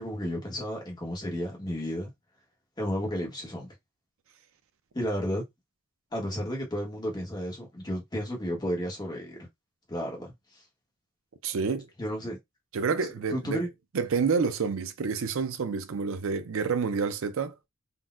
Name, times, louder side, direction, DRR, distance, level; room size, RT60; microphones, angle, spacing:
voice 1, 0.0-2.1 2.8-3.7 4.9-5.4 6.1-9.5 9.9-10.3 12.0-12.4 13.3-13.7, equal, 20° left, 1.0 m, -32 dB
voice 2, 11.4-11.9 12.7-13.6 13.9-17.5, right 5 dB, 75° right, 0.5 m, -28 dB
3.9 x 2.2 x 2.3 m
head